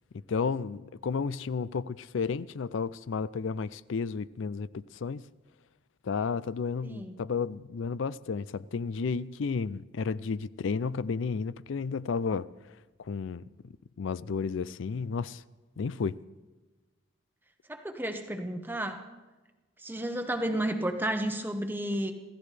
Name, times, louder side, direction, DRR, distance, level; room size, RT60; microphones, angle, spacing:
voice 1, 0.3-5.2 6.0-12.5 13.0-13.4 14.0-15.4 15.8-16.2, left 5 dB, 75° left, 0.4 m, -32 dB
voice 2, 6.8-7.2 17.7-19.0 19.8-22.1, right 1 dB, 10° right, 0.9 m, -32 dB
26.5 x 15.5 x 3.3 m
head